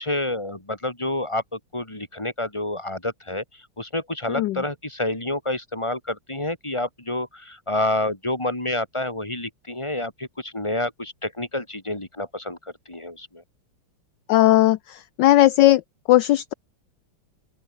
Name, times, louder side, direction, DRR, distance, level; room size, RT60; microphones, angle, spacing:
voice 1, 0.0-13.4, left 1 dB, 15° left, 3.8 m, -29 dB
voice 2, 14.3-15.8 16.1-16.5, left 15 dB, 70° left, 1.1 m, -17 dB
open air
omnidirectional pair, 2.4 m